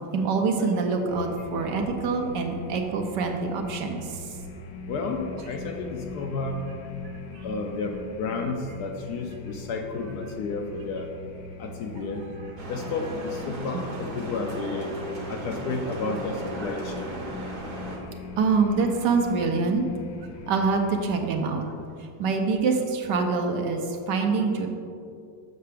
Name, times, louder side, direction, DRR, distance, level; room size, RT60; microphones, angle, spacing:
voice 1, 0.1-4.2 7.3-7.4 18.4-19.8 20.5-21.6 22.2-23.8 24.1-24.7, right 4 dB, 75° right, 4 dB, 1.2 m, -25 dB
sound 1, 1.1-21.0, left 2 dB, 85° left, 1.4 m, -41 dB
voice 2, 4.9-6.6 7.4-11.1 11.6-12.2 12.7-14.9 15.3-17.1, left 3 dB, 70° left, 2 dB, 1.0 m, -31 dB
sound 2, 12.6-18.0, right 2 dB, 50° right, 1.2 m, -37 dB
6.7 x 6.5 x 3.4 m, 2.4 s
omnidirectional pair, 2.0 m